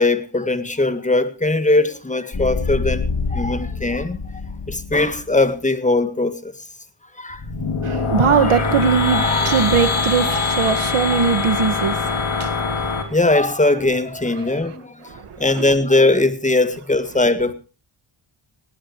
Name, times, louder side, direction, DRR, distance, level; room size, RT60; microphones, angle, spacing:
voice 1, 0.0-4.2 4.7-6.6 7.2-7.4 8.3-8.6 9.1-10.8 11.1-11.3 13.1-17.5, left 2 dB, 15° left, 1.7 m, -20 dB
Organ Sting, 2.3-5.5, left 4 dB, 50° left, 3.4 m, -27 dB
sound 1, 7.3-13.0, left 4 dB, 70° left, 3.2 m, -22 dB
voice 2, 7.9-12.0, right 6 dB, 85° right, 1.9 m, -19 dB
19.0 x 18.0 x 3.1 m
wide cardioid pair, 100°, 49 cm